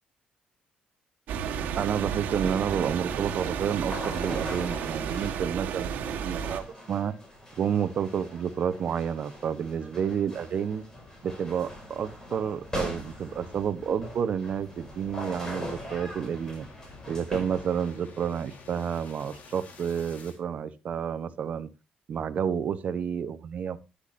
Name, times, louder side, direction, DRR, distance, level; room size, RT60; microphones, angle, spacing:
sound 1, 1.3-6.6, right 8 dB, 80° right, 1.6 m, -32 dB
voice 1, 1.8-5.9 6.2-7.1 7.6-10.8 11.2-16.7 17.1-21.7 22.1-23.8, right 8 dB, 55° right, 12 dB, 1.0 m, -30 dB
sound 2, 2.8-18.0, left 1 dB, 20° left, 5.5 m, -42 dB
sound 3, 9.7-20.4, left 3 dB, 55° left, 3.4 m, -51 dB
13.0 x 10.5 x 2.6 m, 0.27 s
cardioid pair, 120°, 3 cm